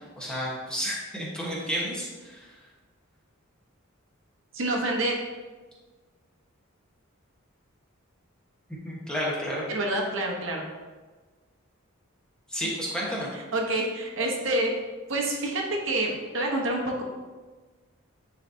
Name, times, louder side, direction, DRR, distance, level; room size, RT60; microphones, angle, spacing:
voice 1, 0.2-2.4 8.7-9.6 12.5-13.3, equal, 5° left, -5 dB, 1.0 m, -31 dB
voice 2, 4.5-5.1 9.7-10.6 13.3-14.7 15.1-17.0, right 1 dB, 60° right, 0 dB, 0.9 m, -27 dB
9.3 x 3.9 x 2.7 m, 1.3 s
head